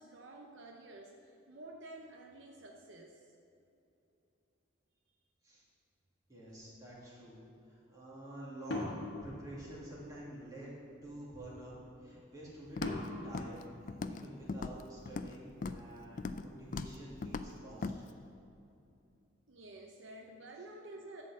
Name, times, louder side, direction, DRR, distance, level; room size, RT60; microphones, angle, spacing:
voice 1, 0.0-3.2 19.5-21.2, right 2 dB, 65° right, 1 dB, 0.7 m, -51 dB
voice 2, 6.3-7.4 7.7-10.7 11.0-17.9, right 1 dB, 15° right, -7 dB, 2.3 m, -48 dB
sound 1, 8.7-10.2 12.8-14.6, left 2 dB, 55° left, 1.3 m, -41 dB
Walk footsteps, 12.8-13.1 13.3-13.6 13.9-14.2 14.5-15.3 15.6-15.9 16.2-16.5 16.7-17.0 17.2-17.5 17.8-18.0, left 4 dB, 40° left, 0.3 m, -39 dB
11.0 x 4.3 x 7.4 m, 2.7 s
head